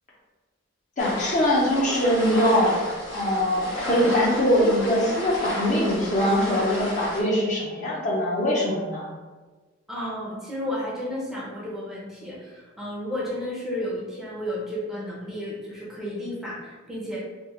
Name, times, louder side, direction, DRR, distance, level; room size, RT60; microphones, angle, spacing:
sound 1, 1.0-7.2, left 1 dB, 75° left, 1.2 m, -32 dB
voice 1, 1.0-2.8 3.1-9.0, equal, 40° left, -4 dB, 0.7 m, -22 dB
voice 2, 9.9-17.2, left 1 dB, ahead, -7 dB, 0.7 m, -32 dB
3.6 x 2.3 x 3.0 m, 1.3 s
head